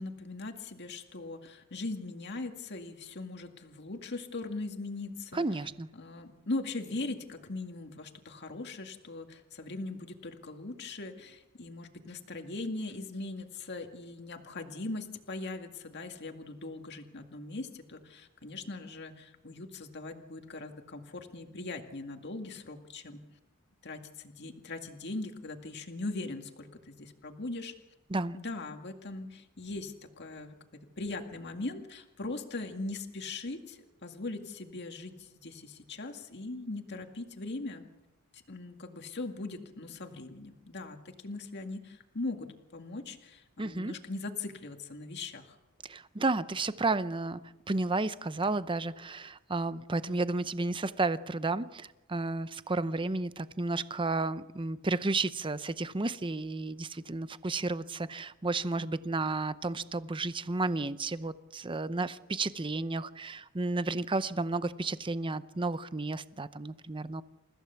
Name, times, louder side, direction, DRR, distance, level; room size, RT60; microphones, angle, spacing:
voice 1, 0.0-5.5 5.9-23.2 23.8-27.7 28.3-30.5 31.0-37.9 38.3-45.6, left 2 dB, 55° left, 5 dB, 2.1 m, -40 dB
voice 2, 5.3-5.9 28.1-28.4 43.6-43.9 45.8-47.4 47.7-67.2, right 3 dB, 25° right, 14 dB, 0.7 m, -32 dB
29.0 x 15.5 x 7.1 m, 1.0 s
head